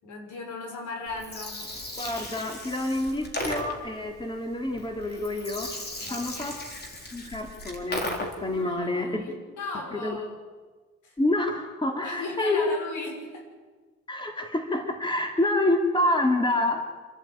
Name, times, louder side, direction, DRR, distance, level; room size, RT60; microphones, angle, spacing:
voice 1, 0.0-1.6 6.0-6.3 8.5-10.3 11.0-11.1 12.0-13.5, left 3 dB, 80° left, 2 dB, 6.1 m, -37 dB
Gurgling, 1.1-8.6, left 1 dB, 35° left, 4.1 m, -36 dB
voice 2, 2.0-5.7 6.1-6.6 7.1-9.3 9.9-10.2 11.2-12.6 14.1-16.8, left 1 dB, 15° left, 3 dB, 2.9 m, -27 dB
27.5 x 11.5 x 9.2 m, 1.4 s
cardioid pair, 90°, 30 cm